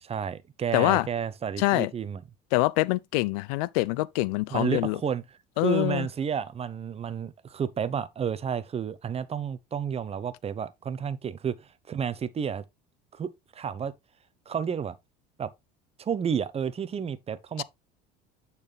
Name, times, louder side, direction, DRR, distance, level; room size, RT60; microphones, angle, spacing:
voice 1, 0.0-2.2 4.5-5.2 5.6-12.6 13.1-13.9 14.5-14.9 15.4-15.5 16.0-17.6, right 7 dB, 30° right, 0.9 m, -31 dB
voice 2, 0.7-1.1 1.6-1.9 2.5-5.0 5.6-6.1 17.6-17.7, left 20 dB, 75° left, 0.4 m, -25 dB
8.7 x 4.2 x 3.4 m
supercardioid pair, 95°, 20 cm